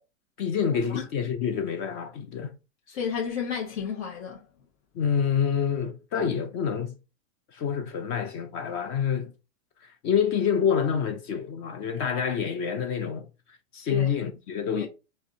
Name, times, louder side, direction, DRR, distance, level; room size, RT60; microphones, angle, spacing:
voice 1, 0.4-2.5 4.9-6.9 7.5-9.3 9.8-13.2 13.7-14.9, left 7 dB, 30° left, 0.5 m, -27 dB
voice 2, 2.9-4.5 13.9-14.1 14.7-14.9, left 7 dB, 60° left, 1.1 m, -31 dB
4.6 x 2.7 x 2.7 m
hypercardioid pair, 130°, 40 cm